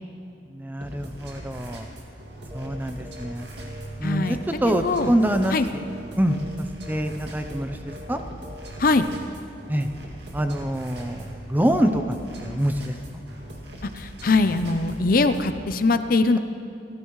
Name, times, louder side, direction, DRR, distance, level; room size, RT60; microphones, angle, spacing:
voice 1, 0.5-1.9 2.5-3.5 4.0-5.8 6.2-8.2 9.7-9.9 10.3-12.2 12.4-12.9, right 1 dB, 10° right, 6 dB, 0.6 m, -25 dB
sound 1, 0.8-15.6, right 1 dB, 65° right, 2.3 m, -40 dB
sound 2, 2.5-2.8 3.0-3.3 3.6-4.9 5.2-5.5 5.7-6.0 6.3-6.5 6.8-7.1 7.3-7.6 7.9-8.2 8.4-8.7 9.0-9.2, left 2 dB, 30° right, 2.3 m, -44 dB
voice 2, 4.0-4.4 4.7-5.1 5.5-5.7 8.8-9.1 13.9-16.4, left 3 dB, 45° left, 9 dB, 0.6 m, -22 dB
28.5 x 14.5 x 3.2 m, 2.4 s
head